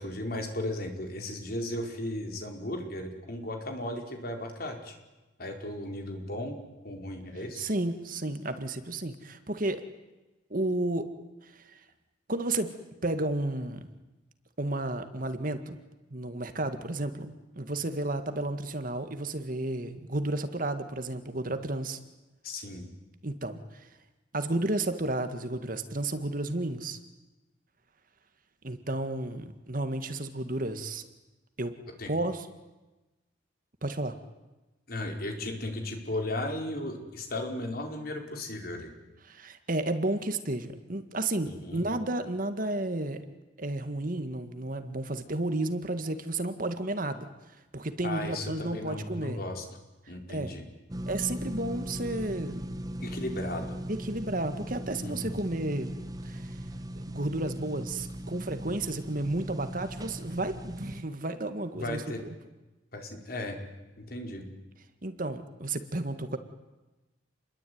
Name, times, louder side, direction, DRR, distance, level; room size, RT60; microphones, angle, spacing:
voice 1, 0.0-5.0 5.4-6.6 6.8-7.7 22.4-22.9 32.0-32.1 34.9-38.9 41.4-41.8 48.0-49.6 50.1-50.6 53.0-53.8 55.0-55.3 61.7-62.2 62.9-63.6 64.0-64.5, left 1 dB, 50° left, 3 dB, 4.8 m, -36 dB
voice 2, 7.6-9.8 10.5-11.1 11.4-11.8 12.3-12.8 13.0-13.9 14.6-15.8 16.1-22.0 23.2-23.9 24.3-27.0 28.6-31.1 31.6-31.8 32.1-32.5 33.8-34.2 39.2-43.3 43.6-47.3 47.7-49.4 50.3-50.6 51.1-52.7 53.9-55.9 56.2-56.6 57.0-62.3 65.0-66.4, right 2 dB, 45° right, 9 dB, 1.9 m, -32 dB
sound 1, 50.9-61.0, equal, 20° right, 1.2 m, -38 dB
29.0 x 22.0 x 9.5 m, 1.1 s
head